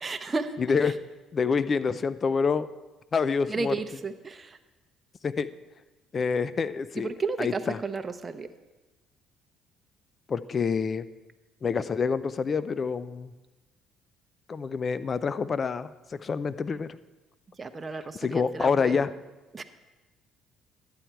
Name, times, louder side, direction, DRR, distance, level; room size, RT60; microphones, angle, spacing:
voice 1, 0.0-0.5 0.8-0.9 3.5-4.6 7.0-8.5 17.6-19.0 19.5-19.6, right 3 dB, 30° right, 8 dB, 0.7 m, -33 dB
voice 2, 0.6-0.9 1.3-2.7 3.1-3.7 5.2-5.5 6.1-7.1 7.4-7.8 10.3-11.0 11.6-13.3 14.5-15.9 16.2-17.0 18.2-19.1, left 5 dB, 40° left, 15 dB, 0.4 m, -27 dB
11.5 x 8.7 x 4.6 m, 1.1 s
supercardioid pair, 75°, 0 cm